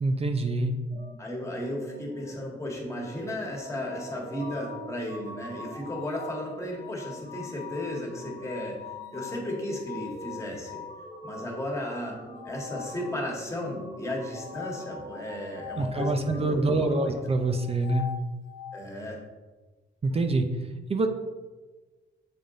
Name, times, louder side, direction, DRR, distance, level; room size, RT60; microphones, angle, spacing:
voice 1, 0.0-0.7 15.8-18.1 20.0-20.5 20.9-21.1, right 2 dB, 30° right, 6 dB, 0.6 m, -25 dB
sound 1, 0.9-16.5, right 1 dB, 65° right, 1.5 m, -45 dB
voice 2, 1.2-8.8 9.1-10.8 11.2-12.2 12.4-17.1 18.7-19.2, left 1 dB, 15° left, -2 dB, 1.8 m, -34 dB
sound 2, 2.9-11.0 12.3-13.6 14.3-16.3 17.5-18.9, left 9 dB, 80° left, 0.4 m, -43 dB
7.5 x 3.5 x 3.9 m, 1.2 s
cardioid pair, 90°, 20 cm